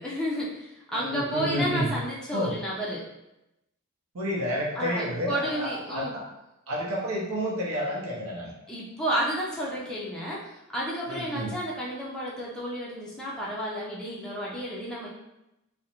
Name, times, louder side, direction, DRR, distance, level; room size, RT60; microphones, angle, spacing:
voice 1, 0.0-3.1 4.7-6.1 8.7-15.1, equal, 5° left, -6 dB, 0.4 m, -31 dB
voice 2, 0.9-1.9 2.3-2.6 4.1-6.2 6.7-8.5 11.1-11.5, equal, 75° right, -3 dB, 0.6 m, -30 dB
2.5 x 2.0 x 2.9 m, 0.90 s
head